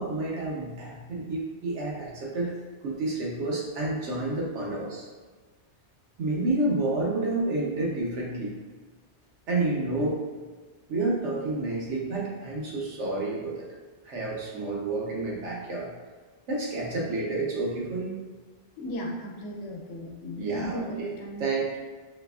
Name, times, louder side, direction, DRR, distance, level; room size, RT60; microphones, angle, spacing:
voice 1, 0.0-2.6 2.8-5.1 6.2-8.5 9.5-10.2 10.9-13.7 14.0-15.9 16.5-18.2 20.4-21.1 21.4-21.8, right 2 dB, 80° right, -3 dB, 1.1 m, -29 dB
voice 2, 18.8-21.4, equal, 85° left, 0 dB, 1.0 m, -36 dB
4.4 x 2.4 x 2.3 m, 1.4 s
omnidirectional pair, 1.2 m